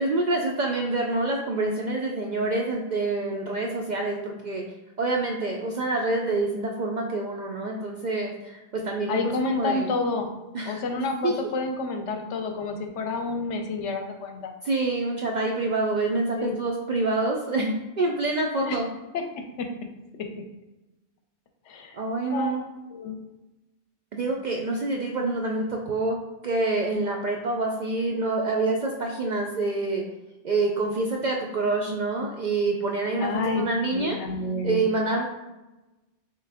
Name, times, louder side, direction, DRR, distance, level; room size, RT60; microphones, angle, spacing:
voice 1, 0.0-4.6 5.0-9.9 10.5-10.8 11.2-11.3 14.6-18.9 21.9-22.6 24.1-30.0 30.4-34.2 34.6-35.2, right 2 dB, 60° right, 0 dB, 0.5 m, -27 dB
voice 2, 9.1-10.3 10.7-14.5 16.4-16.6 18.6-18.8 19.4-19.7 20.2-20.3 21.7-22.0 22.3-22.5 22.9-23.2 33.2-33.6 33.9-34.9, left 3 dB, 80° left, 4 dB, 0.9 m, -29 dB
3.7 x 3.3 x 3.4 m, 1.0 s
omnidirectional pair, 1.2 m